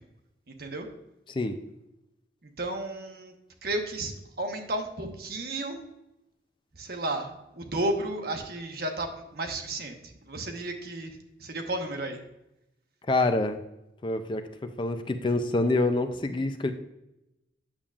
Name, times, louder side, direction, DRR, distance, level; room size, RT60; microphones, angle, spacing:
voice 1, 2.6-3.3 3.6-4.1 4.4-5.8 6.8-9.9 10.3-11.1 11.4-12.2, right 2 dB, 60° right, 4 dB, 1.0 m, -32 dB
voice 2, 13.1-13.6 14.0-16.7, left 2 dB, 30° left, 8 dB, 0.4 m, -26 dB
8.7 x 7.0 x 2.4 m, 0.90 s
head